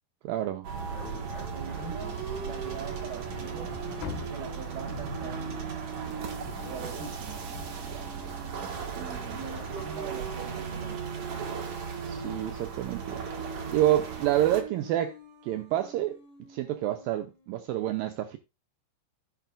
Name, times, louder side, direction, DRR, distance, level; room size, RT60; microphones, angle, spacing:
voice 1, 0.2-0.7 12.0-13.2 13.7-15.2 15.4-16.2 16.5-18.4, right 13 dB, 80° right, 2.1 m, -28 dB
sound 1, 0.6-14.6, right 6 dB, 50° right, 2.6 m, -37 dB
sound 2, 0.9-8.9 9.5-17.6, right 4 dB, 25° right, 6.2 m, -43 dB
voice 2, 1.5-5.6 6.6-7.5 8.9-11.2, right 6 dB, 65° right, 3.6 m, -43 dB
sound 3, 2.7-8.9, left 8 dB, 75° left, 3.0 m, -46 dB
16.0 x 6.5 x 2.5 m
omnidirectional pair, 4.9 m